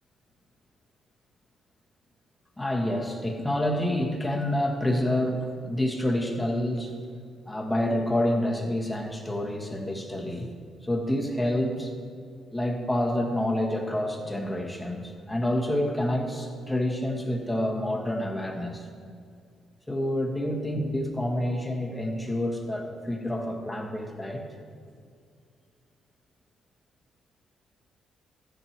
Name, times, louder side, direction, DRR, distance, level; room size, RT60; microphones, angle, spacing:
voice 1, 2.6-6.9 7.5-10.5 10.8-11.9 12.5-18.8 19.9-24.5, left 1 dB, 10° left, 0 dB, 1.6 m, -28 dB
13.5 x 10.0 x 3.1 m, 2.2 s
cardioid pair, 90°, 0 cm